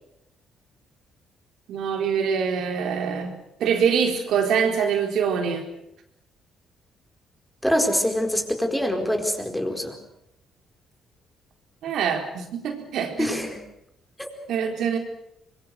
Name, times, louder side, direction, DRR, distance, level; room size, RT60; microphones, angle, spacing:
voice 1, 1.7-3.3 3.6-5.6 11.8-13.3 14.5-15.0, right 7 dB, 75° right, 4 dB, 4.2 m, -24 dB
voice 2, 7.6-10.0 13.2-13.6 14.2-14.3, equal, 5° left, 4 dB, 4.7 m, -24 dB
25.5 x 22.0 x 6.7 m, 0.81 s
cardioid pair, 85°, 0 cm